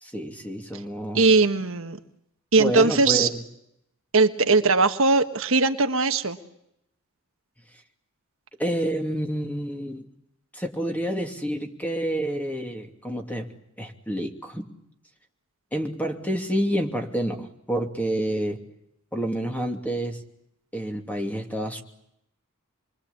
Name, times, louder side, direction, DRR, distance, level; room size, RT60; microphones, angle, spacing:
voice 1, 0.0-1.2 2.6-3.4 8.6-10.1 10.5-13.5 13.8-14.6 15.7-18.6 19.1-20.2 20.7-21.8, equal, 5° left, 3 dB, 2.9 m, -28 dB
voice 2, 1.1-2.0 2.5-3.3 4.1-6.4, right 3 dB, 65° right, 7 dB, 1.5 m, -20 dB
27.0 x 23.0 x 8.5 m, 0.79 s
head